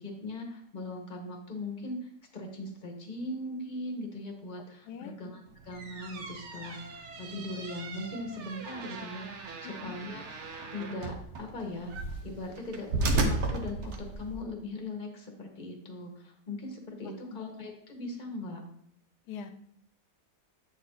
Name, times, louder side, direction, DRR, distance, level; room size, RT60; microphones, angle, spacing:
voice 1, 0.0-10.2 10.7-11.9 12.2-18.6, left 2 dB, 35° left, 2 dB, 1.0 m, -40 dB
voice 2, 4.9-5.2 9.6-9.9 17.3-17.4 19.3-19.5, left 7 dB, 75° left, 8 dB, 1.2 m, -42 dB
sound 1, 5.5-14.4, right 2 dB, 55° right, 0.9 m, -35 dB
7.9 x 4.2 x 3.8 m, 0.67 s
omnidirectional pair, 1.8 m